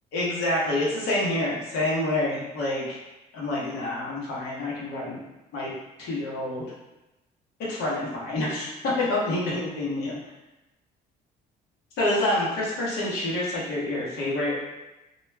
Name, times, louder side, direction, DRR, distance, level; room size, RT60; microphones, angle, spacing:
voice 1, 0.1-3.0 3.3-5.2 5.5-5.7 6.0-6.7 7.6-10.2 12.0-14.6, left 1 dB, 80° left, -6 dB, 0.9 m, -27 dB
2.3 x 2.1 x 3.2 m, 0.98 s
cardioid pair, 110°, 17 cm